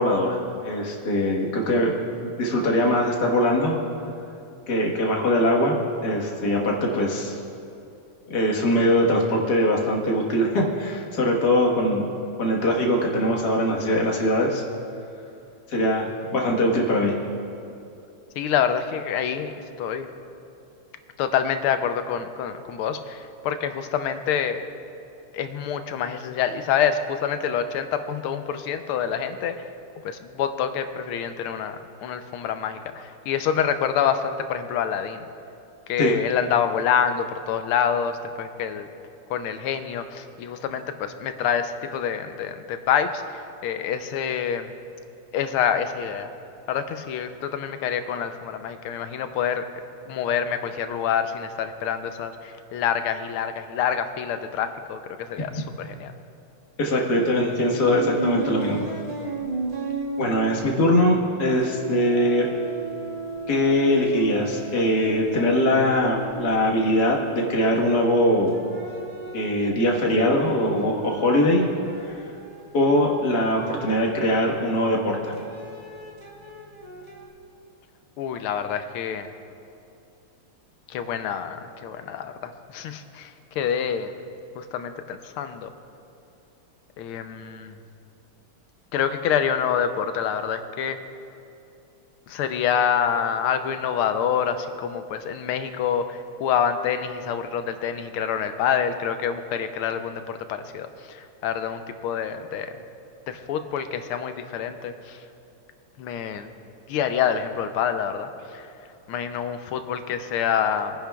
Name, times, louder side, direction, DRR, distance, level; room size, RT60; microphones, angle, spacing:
voice 1, 0.0-1.9 2.4-3.8 4.7-7.4 8.3-12.1 12.4-14.6 15.7-17.2 36.0-36.2 56.8-58.9 60.2-62.5 63.5-68.6 69.3-71.7 72.0-72.2 72.7-75.4, left 1 dB, 50° left, -1 dB, 1.8 m, -22 dB
voice 2, 18.4-20.1 21.2-24.6 25.3-29.7 30.0-35.2 35.9-38.9 39.3-44.7 45.3-46.3 46.7-49.6 50.1-56.1 78.2-79.3 80.9-84.1 84.6-85.7 87.0-87.8 88.9-91.0 92.3-102.7 103.3-105.2 106.0-106.5 106.9-108.7 109.1-110.9, left 8 dB, 80° left, 9 dB, 1.5 m, -27 dB
sound 1, 57.8-61.3 61.6-68.0 68.5-74.7 75.3-77.3, right 2 dB, 20° right, 1.4 m, -35 dB
23.0 x 10.0 x 2.3 m, 2.7 s
omnidirectional pair, 2.4 m